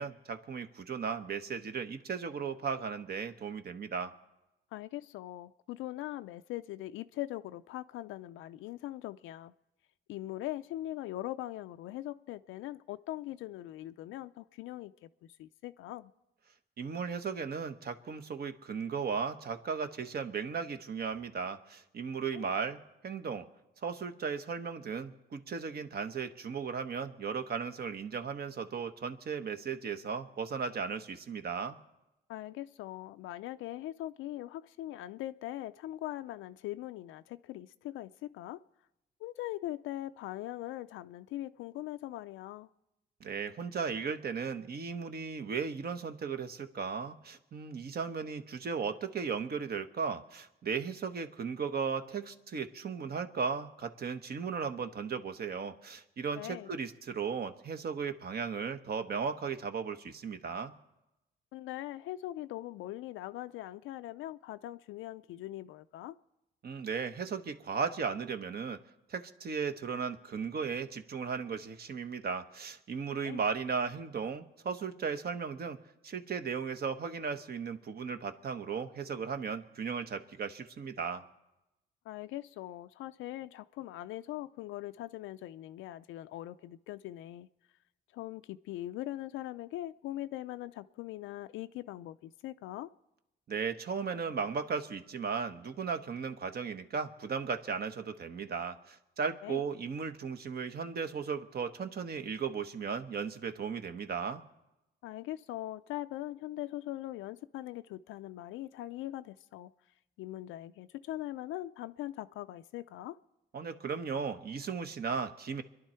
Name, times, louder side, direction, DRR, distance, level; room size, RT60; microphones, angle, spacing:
voice 1, 0.0-4.1 16.8-23.5 23.8-31.8 43.2-60.7 66.6-68.8 69.1-75.8 76.0-81.2 93.5-104.4 113.5-115.6, right 6 dB, 50° right, 1.2 m, -36 dB
voice 2, 4.7-9.5 10.1-16.1 22.3-22.5 32.3-38.6 39.2-42.7 56.4-56.7 61.5-66.1 73.2-73.4 82.1-87.5 88.1-92.9 99.4-99.6 105.0-109.7 110.2-113.2, left 15 dB, 90° left, 0.4 m, -41 dB
25.0 x 11.0 x 4.4 m
cardioid pair, 90°, 20 cm